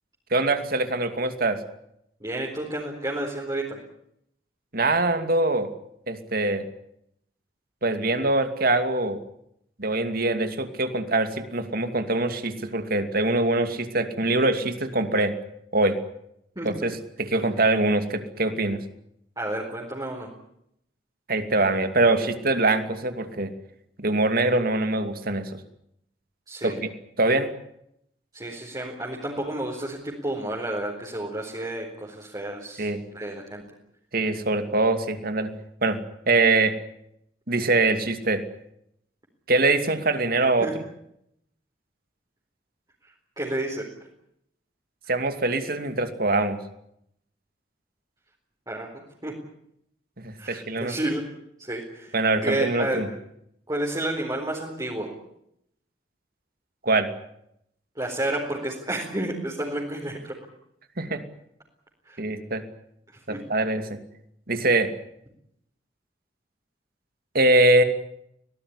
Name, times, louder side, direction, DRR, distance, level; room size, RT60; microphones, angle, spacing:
voice 1, 0.3-1.6 4.7-5.7 6.1-6.6 7.8-9.2 9.8-15.3 15.7-16.0 16.6-18.8 21.3-23.5 24.0-25.6 26.6-26.7 27.2-27.5 32.8-33.0 34.1-35.5 35.8-36.0 36.3-36.8 37.5-38.4 39.5-40.7 45.1-46.6 50.2-50.9 52.1-53.1 56.8-57.1 61.0-61.2 62.2-62.6 63.3-64.0 64.5-64.9 67.3-67.8, right 2 dB, 55° right, 8 dB, 2.7 m, -23 dB
voice 2, 2.2-3.8 16.6-16.7 19.4-20.3 26.5-26.8 28.3-33.6 40.6-40.7 43.4-43.8 48.7-49.3 50.4-51.2 51.6-52.1 52.4-53.0 53.7-55.1 58.0-60.3 62.1-62.2 63.3-63.4, right 1 dB, 20° right, -2 dB, 4.4 m, -31 dB
24.0 x 18.5 x 9.9 m, 0.76 s
head